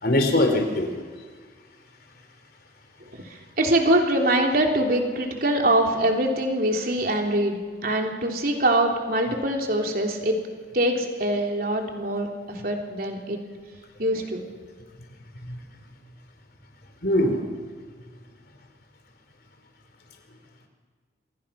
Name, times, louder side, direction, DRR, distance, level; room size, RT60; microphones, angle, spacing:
voice 1, 0.0-0.9 15.4-15.6 17.0-17.5, left 1 dB, 55° left, 4 dB, 4.1 m, -22 dB
voice 2, 3.1-10.4 10.7-13.4 14.0-14.5, right 1 dB, 50° right, 1 dB, 3.6 m, -24 dB
27.0 x 25.5 x 6.0 m, 1.5 s
head